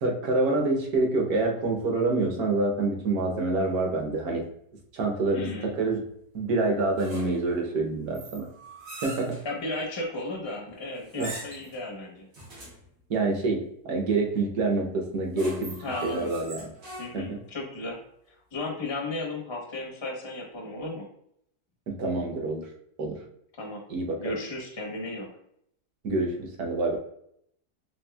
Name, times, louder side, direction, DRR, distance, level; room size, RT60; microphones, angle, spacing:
voice 1, 0.0-4.4 4.9-6.0 6.3-8.5 9.0-9.4 11.1-11.3 13.1-15.7 16.0-16.7 17.1-17.4 21.9-22.7 23.0-23.2 23.9-24.4 26.0-27.0, right 3 dB, 65° right, 1 dB, 1.2 m, -27 dB
voice 2, 5.3-5.7 9.4-12.3 15.8-16.3 17.0-18.0 18.5-21.1 23.6-23.8 24.2-25.3, left 2 dB, 40° left, 0 dB, 0.3 m, -34 dB
sound 1, 7.0-7.5 8.1-9.5 11.0-11.8 12.3-12.8 15.1-17.4, right 2 dB, 90° right, 1.9 m, -42 dB
4.3 x 3.4 x 2.2 m, 0.71 s
omnidirectional pair, 1.8 m